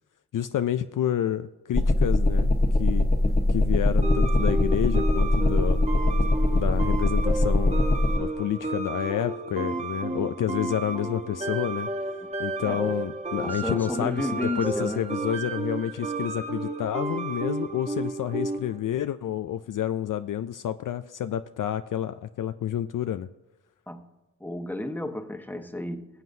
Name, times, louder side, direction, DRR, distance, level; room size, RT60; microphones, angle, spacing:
voice 1, 0.3-2.5 2.8-3.1 3.5-5.8 6.5-7.8 8.2-11.9 12.4-23.3, left 10 dB, 60° left, 11 dB, 0.5 m, -29 dB
sound 1, 1.7-8.2, left 1 dB, 25° left, 1.2 m, -22 dB
sound 2, 4.0-18.8, right 2 dB, 15° right, 1.1 m, -32 dB
voice 2, 12.6-13.0 13.4-15.0 23.9-24.0 24.4-26.1, left 1 dB, 5° left, 7 dB, 1.2 m, -32 dB
19.5 x 7.5 x 2.7 m, 1.0 s
cardioid pair, 45°, 37 cm